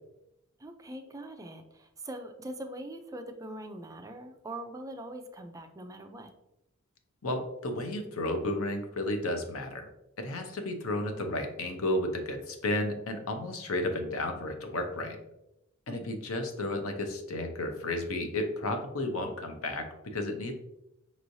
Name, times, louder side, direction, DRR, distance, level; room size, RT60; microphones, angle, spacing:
voice 1, 0.6-6.3 15.9-16.1, right 1 dB, 15° right, 5 dB, 0.4 m, -42 dB
voice 2, 7.2-9.9 10.2-15.2 15.9-20.5, left 1 dB, 70° left, 5 dB, 0.7 m, -32 dB
5.3 x 3.1 x 2.6 m, 0.86 s
head